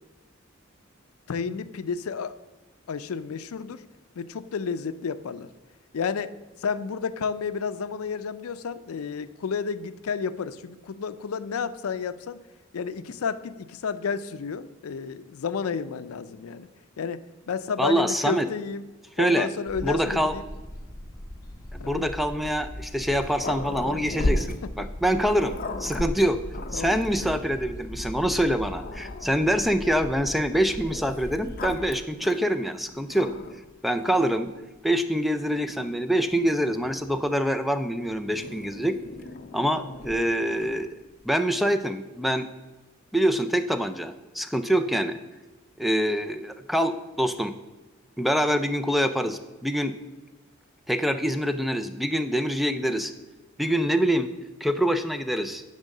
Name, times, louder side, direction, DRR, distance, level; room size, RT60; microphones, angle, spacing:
voice 1, 1.3-2.3 2.9-3.8 4.2-5.5 5.9-12.4 12.7-16.7 17.0-17.2 17.5-18.8 19.2-20.4 21.8-22.1 26.7-27.0 39.5-39.8, left 6 dB, 90° left, 13 dB, 0.4 m, -31 dB
voice 2, 17.8-18.5 19.2-19.5 19.8-20.4 21.7-26.4 26.7-33.3 33.8-34.5 34.8-39.0 39.5-41.0 41.2-42.5 43.1-45.2 45.8-47.5 48.2-49.9 50.9-53.1 53.6-54.3 54.6-55.6, equal, ahead, 9 dB, 0.3 m, -25 dB
sound 1, 19.7-31.9, left 1 dB, 20° left, 0.9 m, -40 dB
Growling, 22.9-27.5 28.2-28.3 28.7-29.8 30.8-33.6 34.0-34.5 35.4-37.2 38.3-40.9, left 2 dB, 45° left, 0.6 m, -35 dB
10.0 x 3.6 x 6.5 m, 1.2 s
head